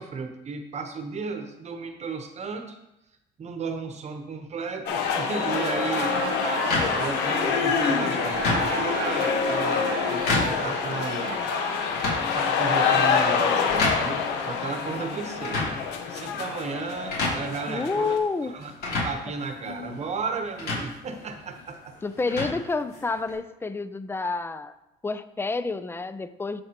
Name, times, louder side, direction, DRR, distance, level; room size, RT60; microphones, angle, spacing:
voice 1, 0.0-2.8 3.4-6.2 6.9-11.4 12.3-15.8 16.1-18.1 18.4-21.9, right 4 dB, 40° right, 6 dB, 1.0 m, -34 dB
sound 1, 4.9-18.2, left 6 dB, 85° left, 1.0 m, -26 dB
Laughter, 5.6-13.2, right 8 dB, 80° right, 0.8 m, -36 dB
sound 2, 6.7-23.3, left 2 dB, 65° left, 2.9 m, -33 dB
voice 2, 17.7-18.5 22.0-24.7 25.0-26.6, left 3 dB, 15° left, 12 dB, 0.4 m, -29 dB
12.0 x 4.7 x 2.9 m, 0.89 s
cardioid pair, 110°, 17 cm